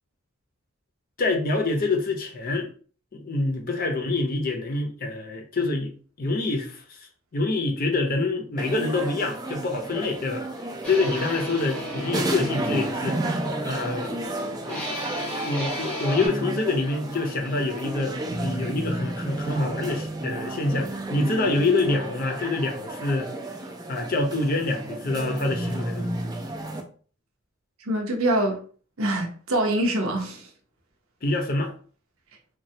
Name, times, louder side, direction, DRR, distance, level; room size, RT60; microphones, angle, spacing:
voice 1, 1.2-2.7 3.1-7.0 7.3-13.2 13.6-14.3 14.7-15.0 15.4-23.3 23.9-26.1 31.2-31.7, left 2 dB, 45° left, 0.6 m, -26 dB
sound 1, 8.6-26.8, right 1 dB, 20° right, 0.3 m, -32 dB
sound 2, 10.8-16.3, equal, 5° left, 0.7 m, -35 dB
voice 2, 27.9-28.6 29.0-30.5, right 1 dB, 85° right, 0.7 m, -24 dB
3.1 x 2.3 x 2.7 m
head